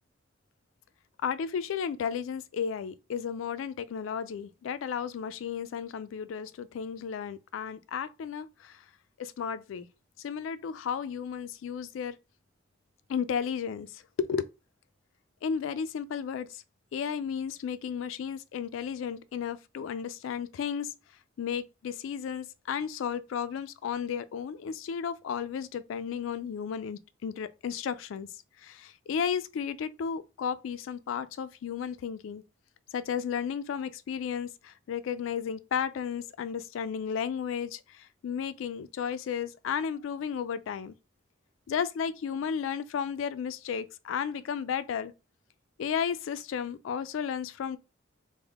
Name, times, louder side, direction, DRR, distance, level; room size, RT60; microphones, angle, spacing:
voice 1, 1.2-8.8 9.2-9.9 10.2-12.2 13.1-14.5 15.4-16.6 16.9-20.9 21.4-28.3 28.6-32.4 32.9-40.9 41.7-45.1 45.8-47.8, left 7 dB, 80° left, 0.3 m, -33 dB
3.4 x 2.1 x 3.5 m
head